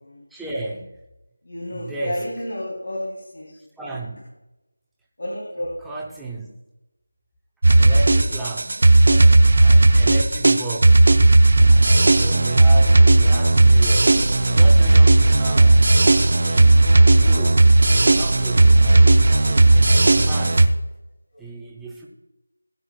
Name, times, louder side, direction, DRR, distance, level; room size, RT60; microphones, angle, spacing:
voice 1, 0.3-1.0 1.7-2.5 3.8-4.2 5.5-6.5 7.6-8.8 9.5-11.1 12.1-16.0 16.4-20.7 21.4-22.1, right 3 dB, ahead, -5 dB, 0.7 m, -34 dB
voice 2, 1.5-3.5 5.2-5.7 9.1-9.4 14.1-14.2 20.4-20.5, left 1 dB, 60° left, -3 dB, 3.2 m, -31 dB
sound 1, 7.6-20.7, right 2 dB, 45° right, 0.7 m, -14 dB
19.0 x 9.3 x 2.4 m, 0.99 s
figure-of-eight pair, 175°, 0 cm